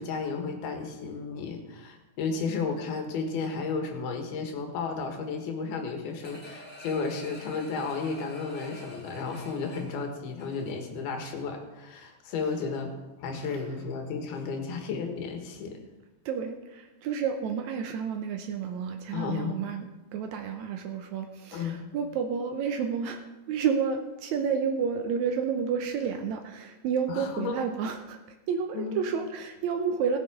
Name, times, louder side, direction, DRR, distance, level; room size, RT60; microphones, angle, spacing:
voice 1, 0.0-12.9 13.2-15.8 19.1-19.6 21.5-21.8 27.1-27.6 28.7-29.0, left 5 dB, 85° left, 4 dB, 3.5 m, -33 dB
sound 1, 6.2-11.0 11.4-11.5, left 1 dB, 5° left, 4.0 m, -47 dB
voice 2, 16.3-19.9 20.1-23.2 23.5-28.2 28.5-30.2, right 6 dB, 90° right, 5 dB, 1.6 m, -30 dB
16.5 x 8.3 x 5.0 m, 1.1 s
omnidirectional pair, 4.4 m